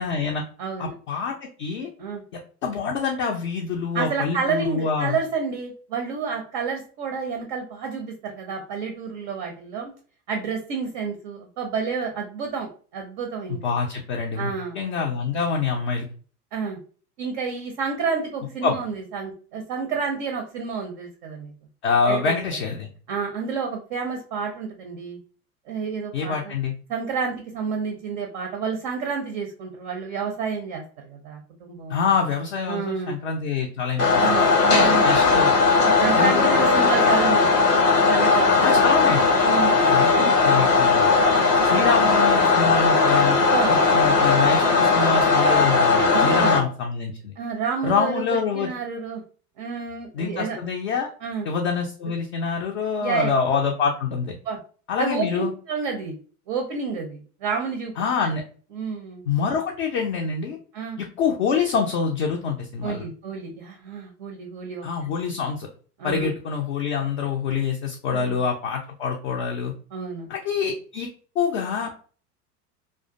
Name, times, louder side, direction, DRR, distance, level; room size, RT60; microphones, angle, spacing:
voice 1, 0.0-0.4 0.8-1.9 2.3-5.2 13.5-16.1 18.6-18.8 21.8-22.9 26.1-26.7 31.9-34.4 35.0-35.5 36.2-36.7 38.6-39.2 39.9-41.1 41.6-43.4 43.7-47.3 47.8-48.7 50.1-51.1 51.4-54.3 54.9-55.5 58.0-58.4 59.3-60.6 61.0-63.0 64.8-65.7 66.0-69.7 70.3-71.1 71.4-71.9, left 5 dB, 45° left, 1 dB, 0.5 m, -26 dB
voice 2, 0.6-0.9 2.0-2.2 3.9-9.9 10.3-13.7 14.4-14.8 16.5-16.8 17.2-21.5 22.1-22.4 23.1-25.2 25.7-26.5 26.9-32.0 32.7-33.2 34.2-35.1 35.8-37.5 38.0-38.8 39.4-40.0 43.5-43.8 46.1-46.6 47.4-49.2 49.6-50.6 51.2-51.5 53.0-53.3 54.4-54.6 55.0-56.2 56.5-57.9 58.7-59.2 60.7-61.0 62.8-64.9 66.0-66.3 68.1-68.4 69.9-70.3, right 5 dB, 35° right, 2 dB, 0.4 m, -29 dB
sound 1, 34.0-46.6, left 4 dB, 85° left, 0.8 m, -18 dB
2.4 x 2.1 x 2.4 m, 0.41 s
figure-of-eight pair, 80°, 47 cm